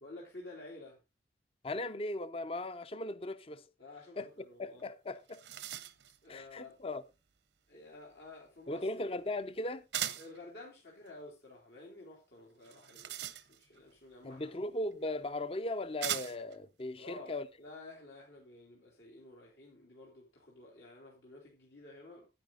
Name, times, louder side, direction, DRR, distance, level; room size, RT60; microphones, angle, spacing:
voice 1, 0.0-1.0 3.8-4.9 6.2-6.7 7.7-8.9 10.1-14.6 17.0-22.3, left 2 dB, 75° left, 3.2 m, -52 dB
voice 2, 1.6-3.7 4.2-4.3 4.6-5.4 6.3-7.0 8.7-9.9 14.2-17.5, left 2 dB, 30° left, 0.6 m, -38 dB
sound 1, 4.8-4.9 5.2-6.2 9.9-10.4 12.6-13.8 14.9-15.0 16.0-16.6, right 11 dB, 85° right, 0.9 m, -39 dB
10.5 x 9.0 x 3.8 m
head